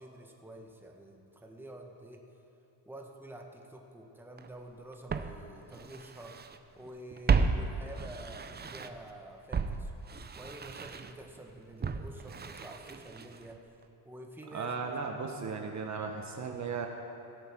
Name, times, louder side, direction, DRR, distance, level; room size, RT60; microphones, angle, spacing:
voice 1, 0.0-2.2 2.8-6.3 6.7-9.9 10.4-13.6 14.0-14.7, right 1 dB, 5° right, 1 dB, 1.4 m, -48 dB
Walk footsteps, 4.4-4.5 5.1-6.6 6.9-9.1 9.5-13.6 13.8-13.9, right 5 dB, 25° right, 0.5 m, -33 dB
voice 2, 14.5-16.9, right 5 dB, 40° right, 3 dB, 1.1 m, -36 dB
16.0 x 8.1 x 6.1 m, 2.8 s
cardioid pair, 105°, 43 cm